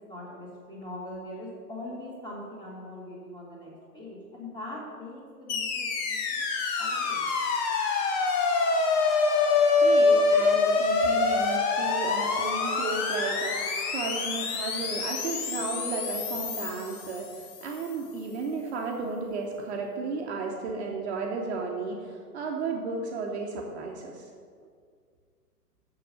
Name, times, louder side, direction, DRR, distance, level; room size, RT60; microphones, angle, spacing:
voice 1, 0.1-6.4 6.8-7.3, left 1 dB, 10° left, -5 dB, 2.1 m, -41 dB
sound 1, 5.5-17.7, left 4 dB, 30° left, 0.9 m, -26 dB
voice 2, 9.8-24.3, right 4 dB, 45° right, 0 dB, 1.0 m, -34 dB
6.8 x 6.7 x 6.5 m, 2.1 s
figure-of-eight pair, 115°, 48 cm